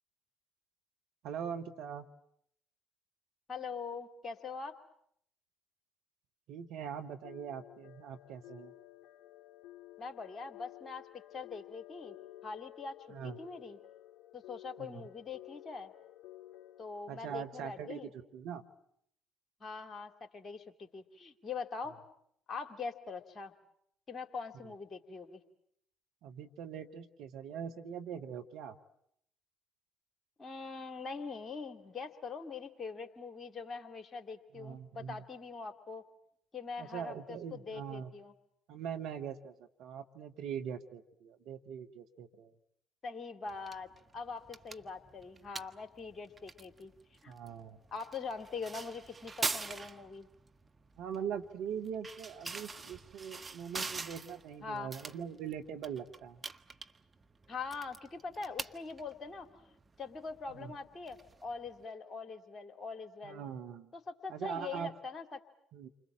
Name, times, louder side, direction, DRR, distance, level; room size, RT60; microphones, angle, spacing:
voice 1, 1.2-2.0 6.5-8.7 13.1-13.4 14.8-15.0 17.1-18.6 26.2-28.8 34.5-35.2 36.8-38.1 38.7-39.5 39.8-42.5 47.3-47.8 51.0-56.4 60.5-60.7 63.2-63.9 64.3-64.9 65.7-65.9, right 8 dB, 60° right, 6 dB, 1.7 m, -42 dB
voice 2, 3.5-4.7 10.0-12.1 12.4-13.0 13.2-13.8 14.3-15.9 16.8-18.1 19.6-22.0 22.5-23.5 24.1-25.4 30.4-36.0 36.5-38.3 43.0-46.9 47.2-47.4 47.9-50.3 54.6-54.9 57.5-63.4 63.9-65.4, left 4 dB, 35° left, 7 dB, 2.8 m, -43 dB
sound 1, 7.2-16.8, left 15 dB, 60° left, 2.5 m, -53 dB
sound 2, 43.5-61.8, right 4 dB, 25° right, 1.3 m, -45 dB
29.0 x 25.5 x 7.6 m, 0.72 s
figure-of-eight pair, 50°, 0 cm